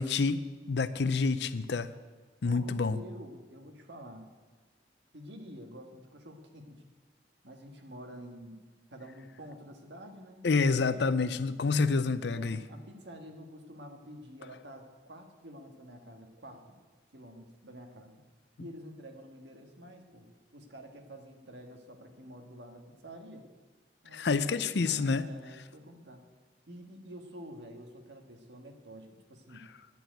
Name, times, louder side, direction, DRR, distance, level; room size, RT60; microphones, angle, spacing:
voice 1, 0.0-1.9 2.4-3.0 10.4-12.6 24.1-25.3, left 4 dB, 65° left, 13 dB, 0.6 m, -28 dB
voice 2, 2.4-4.3 5.1-6.8 7.4-8.6 8.9-10.5 10.7-11.3 12.1-16.8 17.1-18.3 18.6-23.5 24.0-26.2 26.7-29.6, equal, 70° right, 4 dB, 1.6 m, -49 dB
10.5 x 6.9 x 9.2 m, 1.3 s
head